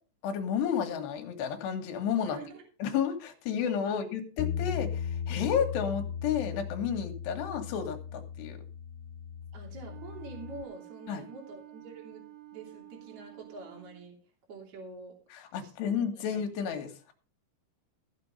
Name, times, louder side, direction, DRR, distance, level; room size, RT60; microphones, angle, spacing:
voice 1, 0.2-2.4 2.8-8.6 11.1-11.2 15.3-17.1, left 8 dB, 65° left, 5 dB, 3.2 m, -31 dB
voice 2, 2.3-2.6 3.9-4.0 9.5-12.3 12.5-14.2 14.5-15.1 15.6-15.9 16.2-16.3, right 3 dB, 40° right, 0 dB, 3.7 m, -46 dB
Bass guitar, 4.4-10.6, left 7 dB, 85° left, 3.2 m, -37 dB
Wind instrument woodwind instrument, 9.9-14.1, right 15 dB, 70° right, 3.3 m, -51 dB
15.0 x 6.9 x 5.4 m, 0.37 s
omnidirectional pair, 5.8 m